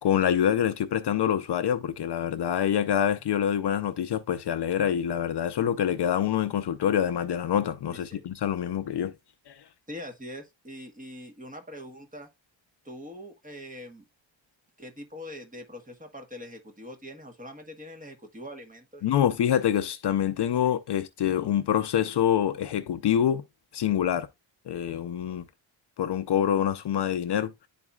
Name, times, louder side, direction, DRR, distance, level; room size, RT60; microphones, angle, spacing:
voice 1, 0.0-9.1 9.5-9.6 19.0-23.4 23.7-24.3 24.7-25.5 26.0-27.5, left 9 dB, 60° left, 0.6 m, -26 dB
voice 2, 7.9-8.2 9.9-12.3 12.8-14.1 14.8-19.2, left 1 dB, 15° right, 1.2 m, -43 dB
10.5 x 4.2 x 2.3 m
wide cardioid pair, 150°, 47 cm